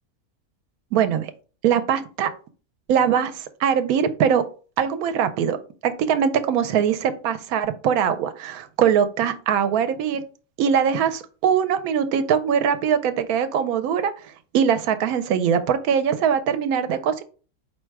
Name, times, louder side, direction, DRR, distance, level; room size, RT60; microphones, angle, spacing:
voice 1, 0.9-1.3 1.6-2.3 2.9-3.3 3.6-4.4 4.8-5.6 5.8-10.2 10.6-14.1 14.5-17.2, right 8 dB, 75° right, 10 dB, 1.0 m, -21 dB
4.7 x 2.1 x 4.5 m, 0.37 s
omnidirectional pair, 1.6 m